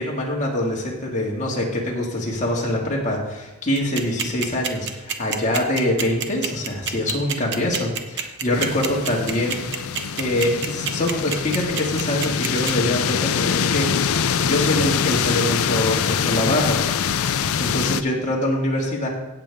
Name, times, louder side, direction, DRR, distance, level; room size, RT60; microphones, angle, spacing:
voice 1, 0.0-9.6 10.2-13.9 14.2-16.8 17.6-19.1, left 1 dB, 35° left, -2 dB, 2.3 m, -24 dB
sound 1, 3.8-12.7, right 8 dB, 55° right, 0.9 m, -26 dB
sound 2, 8.5-18.0, left 7 dB, 75° left, 0.5 m, -24 dB
16.5 x 7.0 x 3.7 m, 1.1 s
head